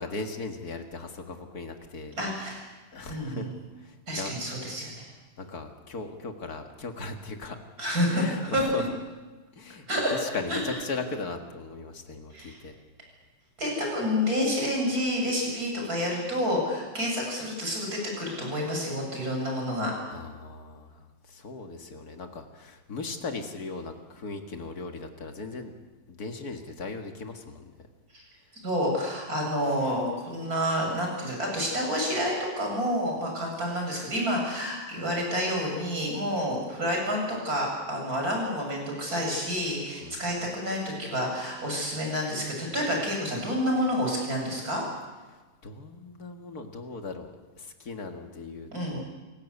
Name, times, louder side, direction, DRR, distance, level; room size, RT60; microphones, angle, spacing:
voice 1, 0.0-2.1 2.9-3.5 3.8-4.3 5.4-7.6 8.1-8.9 9.5-9.9 10.1-12.7 20.1-25.7 26.1-27.6 40.0-40.2 45.3-49.0, left 3 dB, 40° left, 4 dB, 1.5 m, -38 dB
voice 2, 2.1-2.6 3.1-3.5 4.1-5.0 7.8-8.6 9.9-10.1 10.5-10.6 12.3-12.6 13.6-19.9 28.1-28.2 28.6-44.8 48.7-49.0, equal, 20° right, 0 dB, 7.7 m, -29 dB
28.5 x 16.5 x 8.3 m, 1.3 s
omnidirectional pair, 4.2 m